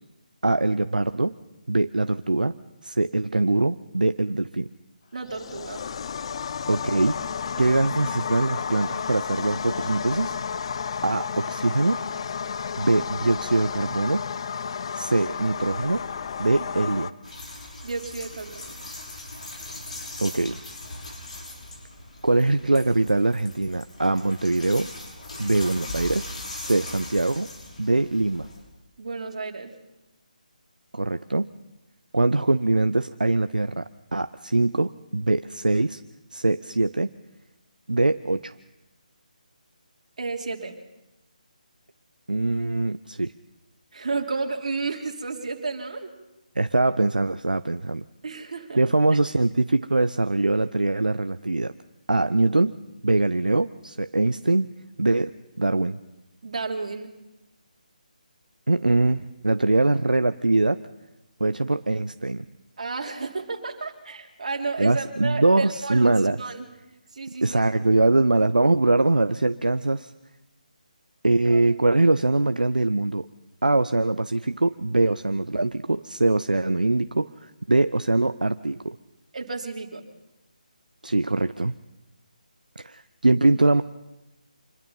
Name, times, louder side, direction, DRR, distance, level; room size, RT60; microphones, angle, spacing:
voice 1, 0.4-1.3 1.7-2.5 2.8-4.7 6.7-7.2 7.6-10.4 11.0-12.0 12.8-14.2 14.9-16.0 16.4-17.1 20.2-20.6 22.2-24.9 25.4-26.3 26.6-27.5 27.8-28.5 30.9-31.5 32.1-33.8 34.1-36.0 36.3-37.1 37.9-38.5 42.3-43.3 46.6-48.0 48.8-51.7 52.1-52.7 53.0-54.7 55.0-55.3 55.6-56.0 58.7-60.8 61.4-62.4 64.8-66.4 67.4-70.1 71.2-73.3 73.6-79.0 81.0-81.8 82.8-83.8, right 2 dB, 80° right, 12 dB, 0.7 m, -22 dB
voice 2, 5.1-5.8 16.6-16.7 17.8-18.8 29.0-29.7 40.2-40.7 43.9-46.1 48.2-48.8 56.4-57.1 62.8-66.7 67.1-67.6 71.4-71.6 79.3-80.0, right 4 dB, 55° right, 2 dB, 3.2 m, -32 dB
sound 1, 5.2-17.1, left 6 dB, 40° left, 0.7 m, -32 dB
sound 2, 17.2-28.6, left 2 dB, 55° left, 6.5 m, -40 dB
26.0 x 21.5 x 5.7 m, 1.0 s
figure-of-eight pair, 150°, 5 cm